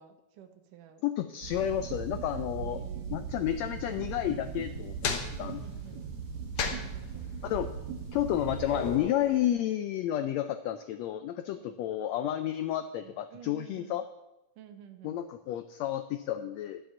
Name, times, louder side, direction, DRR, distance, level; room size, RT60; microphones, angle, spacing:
voice 1, 0.0-1.0 2.6-3.4 5.3-6.1 6.7-7.3 11.6-11.8 13.0-14.0 14.6-15.2, right 10 dB, 80° right, 7 dB, 2.6 m, -51 dB
voice 2, 1.0-2.8 3.1-5.6 7.4-7.7 8.1-14.0 15.0-16.8, left 12 dB, 90° left, 10 dB, 1.5 m, -31 dB
sound 1, 1.4-9.0, right 6 dB, 65° right, 2.9 m, -39 dB
sound 2, 4.4-9.5, left 5 dB, 60° left, 2.0 m, -37 dB
11.5 x 7.7 x 7.1 m, 0.94 s
omnidirectional pair, 3.7 m